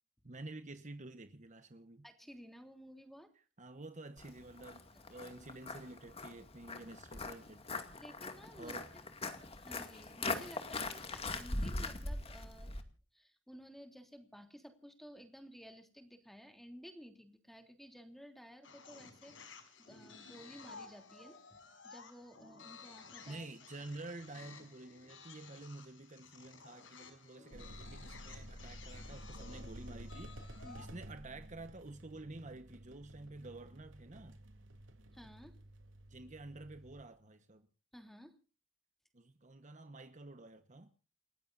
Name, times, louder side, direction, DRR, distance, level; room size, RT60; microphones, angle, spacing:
voice 1, 0.2-2.1 3.6-7.8 8.6-8.9 23.3-34.4 36.1-37.7 39.1-40.9, right 2 dB, 40° right, 1.2 m, -50 dB
voice 2, 2.0-3.3 8.0-8.7 9.6-12.7 13.1-21.4 21.8-23.5 30.6-30.9 35.1-35.5 37.9-38.3, equal, ahead, 3.2 m, -54 dB
Walk footsteps, 4.2-12.8, left 3 dB, 30° left, 2.3 m, -42 dB
sound 1, 18.6-31.0, left 5 dB, 90° left, 5.5 m, -55 dB
sound 2, 27.5-37.0, equal, 90° right, 3.2 m, -52 dB
29.5 x 15.0 x 2.6 m
head